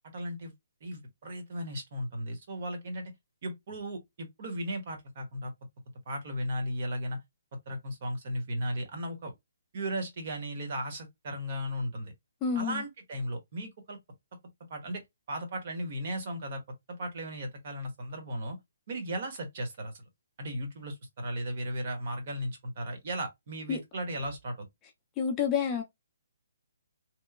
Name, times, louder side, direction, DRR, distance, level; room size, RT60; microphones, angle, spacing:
voice 1, 0.1-0.5 0.8-3.1 3.4-5.5 6.1-7.2 7.7-9.3 9.7-12.1 12.5-14.0 14.7-15.0 15.3-16.6 16.9-18.6 18.9-20.0 20.4-24.7, equal, 40° right, 0.9 m, -36 dB
voice 2, 12.4-12.8 23.7-23.8 25.2-25.8, left 7 dB, 15° left, 0.4 m, -28 dB
2.9 x 2.0 x 2.3 m
hypercardioid pair, 165°, 0 cm